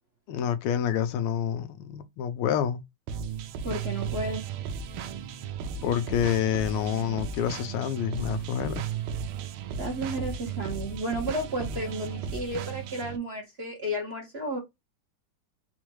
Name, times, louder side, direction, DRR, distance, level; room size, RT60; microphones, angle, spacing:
voice 1, 0.3-2.8 5.8-8.9 11.7-11.8, left 9 dB, 90° left, 1.6 m, -28 dB
sound 1, 3.1-13.2, right 6 dB, 80° right, 1.5 m, -35 dB
voice 2, 3.6-4.5 9.8-14.6, right 1 dB, 40° right, 1.0 m, -32 dB
4.4 x 2.4 x 3.0 m
omnidirectional pair, 2.4 m